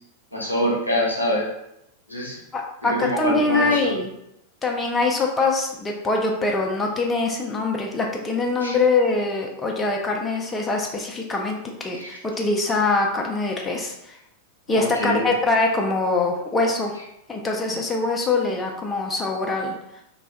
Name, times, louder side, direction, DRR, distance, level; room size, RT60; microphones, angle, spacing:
voice 1, 0.3-1.5 2.1-2.4 2.8-3.9 8.6-8.8 11.9-12.2 14.7-15.2, equal, 85° left, -4 dB, 0.7 m, -25 dB
voice 2, 2.5-4.1 4.6-14.2 14.7-16.9 17.3-19.7, left 3 dB, 15° left, 0 dB, 0.4 m, -23 dB
2.2 x 2.1 x 2.7 m, 0.82 s
figure-of-eight pair, 90°, 0 cm